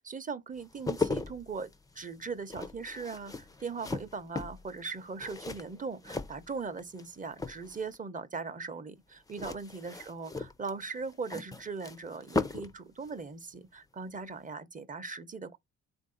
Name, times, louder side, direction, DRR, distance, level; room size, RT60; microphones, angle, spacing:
voice 1, 0.0-15.6, right 4 dB, 25° right, 0.8 m, -40 dB
sound 1, 0.6-7.0 7.3-8.0 9.3-12.8 13.0-13.2, left 3 dB, 10° left, 0.5 m, -37 dB
3.6 x 2.6 x 3.8 m
cardioid pair, 90°, 30 cm